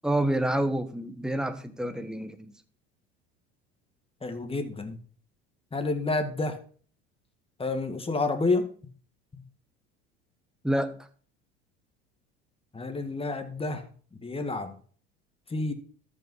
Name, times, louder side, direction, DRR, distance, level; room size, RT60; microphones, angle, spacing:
voice 1, 0.0-2.5 10.6-11.0, right 1 dB, ahead, 9 dB, 1.3 m, -28 dB
voice 2, 4.2-5.0 5.7-6.6 7.6-8.7 9.3-9.4 12.7-14.8 15.5-15.7, left 3 dB, 20° left, 8 dB, 1.8 m, -29 dB
13.0 x 5.7 x 5.5 m, 0.43 s
supercardioid pair, 90°, 31 cm